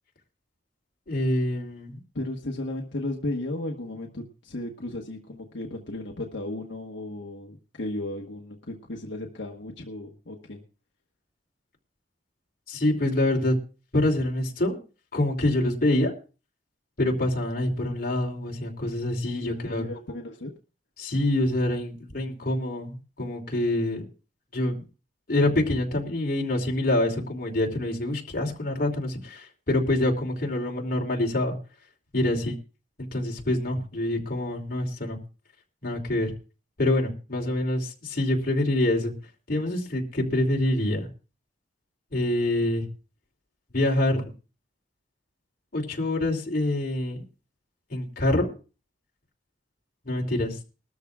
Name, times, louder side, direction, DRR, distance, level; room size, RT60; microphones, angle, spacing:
voice 1, 1.1-2.0 12.7-13.6 13.9-14.8 15.1-16.1 17.0-19.8 21.0-24.1 24.5-24.8 25.3-31.6 32.1-32.5 33.0-35.2 35.8-36.3 36.8-39.1 39.5-41.1 42.1-42.8 43.7-44.3 45.7-47.2 47.9-48.5 50.0-50.6, left 1 dB, 55° left, 0 dB, 2.8 m, -26 dB
voice 2, 2.1-10.6 19.4-20.5 32.3-32.5, left 1 dB, 80° left, 0 dB, 1.3 m, -35 dB
21.5 x 13.0 x 2.4 m, 0.34 s
head